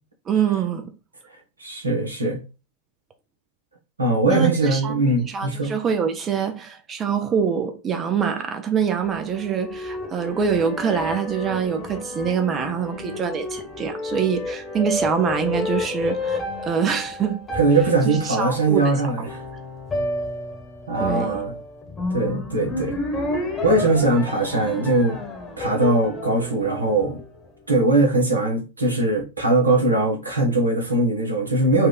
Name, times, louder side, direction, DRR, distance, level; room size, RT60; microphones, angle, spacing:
voice 1, 0.3-0.9 4.3-5.0 5.3-16.4 16.7-17.5 18.1-18.8 21.0-21.4, right 7 dB, 25° right, 0.5 m, -25 dB
voice 2, 1.6-2.4 4.0-5.7 17.5-19.4 20.9-21.5 22.1-22.9 23.6-25.2 25.6-27.2 27.7-31.9, right 2 dB, 80° right, 1.2 m, -21 dB
sound 1, 9.0-27.6, left 2 dB, 20° left, 1.2 m, -31 dB
4.4 x 2.5 x 3.2 m
figure-of-eight pair, 90°, 0 cm